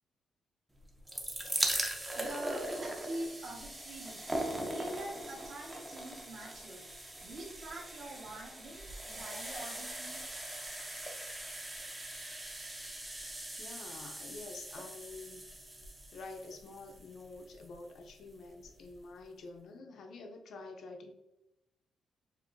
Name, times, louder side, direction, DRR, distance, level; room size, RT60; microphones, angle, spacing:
sound 1, 0.8-17.9 18.6-18.7 18.9-19.0, right 1 dB, 10° right, 0.6 m, -40 dB
voice 1, 2.1-6.8 7.2-10.2, right 1 dB, 50° right, -2 dB, 1.3 m, -45 dB
voice 2, 13.6-15.4 16.1-21.1, left 3 dB, 55° left, 4 dB, 0.6 m, -48 dB
7.2 x 2.7 x 2.6 m, 0.92 s
cardioid pair, 175°, 0 cm